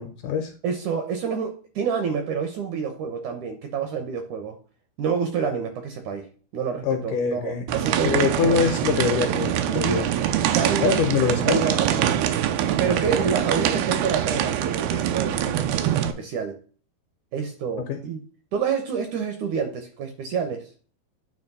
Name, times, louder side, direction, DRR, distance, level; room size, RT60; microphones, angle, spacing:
voice 1, 0.0-0.5 6.8-7.6 8.0-10.1 10.8-11.6 17.8-18.0, left 7 dB, 75° left, 6 dB, 2.0 m, -24 dB
voice 2, 0.6-4.6 5.0-6.3 6.5-8.6 9.7-10.1 10.4-11.1 11.5-12.4 12.8-16.6 17.3-18.2 18.5-20.7, right 6 dB, 75° right, 6 dB, 1.9 m, -28 dB
sound 1, 7.7-16.1, right 10 dB, 90° right, 2.6 m, -24 dB
9.2 x 3.1 x 5.3 m, 0.41 s
omnidirectional pair, 4.3 m